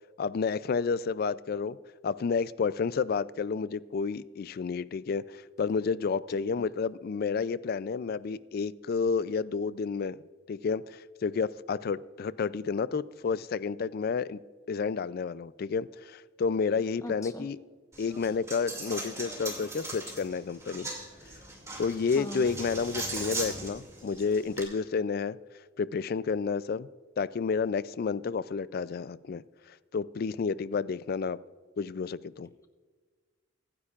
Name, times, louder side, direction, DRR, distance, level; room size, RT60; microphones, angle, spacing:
voice 1, 0.2-1.8 2.0-10.2 10.5-14.4 14.7-17.6 18.0-20.9 21.8-25.4 25.8-26.9 27.2-29.4 29.9-31.4 31.8-32.5, left 5 dB, 50° left, 18 dB, 0.3 m, -30 dB
voice 2, 17.0-17.5 22.1-22.5, equal, 15° left, 6 dB, 1.0 m, -39 dB
Coin (dropping), 17.9-24.6, right 2 dB, 15° right, 2.4 m, -39 dB
24.0 x 9.8 x 2.4 m, 1.5 s
head